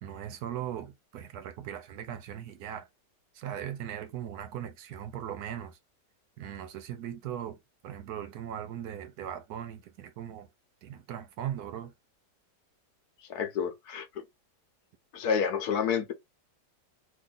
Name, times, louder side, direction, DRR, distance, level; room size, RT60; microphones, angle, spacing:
voice 1, 0.0-2.9 3.3-5.8 6.4-10.5 10.8-11.9, right 10 dB, 70° right, 1.0 m, -39 dB
voice 2, 13.3-14.1 15.1-16.1, left 7 dB, 65° left, 1.2 m, -29 dB
3.1 x 2.6 x 3.8 m
omnidirectional pair, 1.9 m